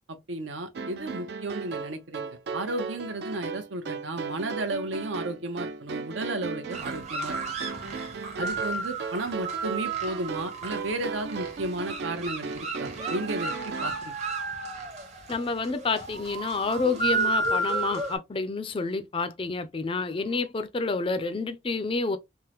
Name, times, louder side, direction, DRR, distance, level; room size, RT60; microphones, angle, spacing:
voice 1, 0.1-7.4 8.4-14.1, right 2 dB, 70° right, 0.8 m, -33 dB
sound 1, 0.7-14.0, right 4 dB, 55° right, 0.4 m, -36 dB
sound 2, 6.7-18.2, right 3 dB, 35° right, 0.9 m, -32 dB
voice 2, 15.3-22.2, left 4 dB, 25° left, 0.4 m, -29 dB
3.5 x 2.1 x 2.8 m
head